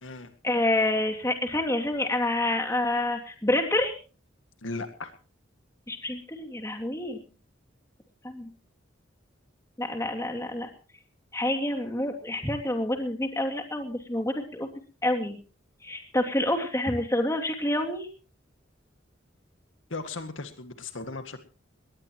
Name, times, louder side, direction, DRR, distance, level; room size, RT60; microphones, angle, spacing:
voice 1, 0.4-3.9 5.9-7.2 8.2-8.5 9.8-10.7 11.3-14.7 15.0-15.4 15.8-18.1, left 1 dB, 15° left, 3 dB, 2.7 m, -28 dB
voice 2, 4.6-5.1 19.9-21.4, left 3 dB, 90° left, 8 dB, 2.0 m, -37 dB
20.5 x 19.0 x 3.1 m, 0.36 s
head